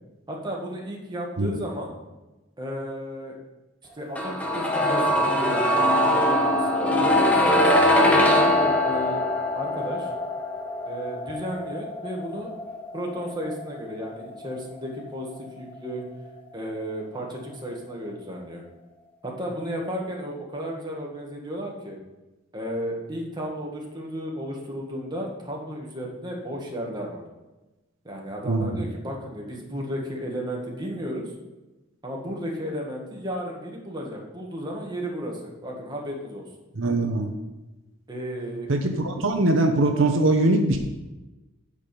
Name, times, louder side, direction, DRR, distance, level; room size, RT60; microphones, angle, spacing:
voice 1, 0.3-1.9 2.6-3.4 4.0-9.2 9.5-10.1 10.9-12.5 12.9-16.0 16.5-18.6 19.2-22.0 22.5-27.2 28.0-31.3 32.0-36.5 38.1-38.7, equal, 20° right, -1 dB, 1.9 m, -33 dB
sound 1, 4.1-16.0 16.3-16.4, left 1 dB, 5° left, 1.1 m, -23 dB
voice 2, 36.8-37.3 38.7-40.8, right 2 dB, 75° right, 4 dB, 0.9 m, -21 dB
9.0 x 5.0 x 6.9 m, 1.1 s
head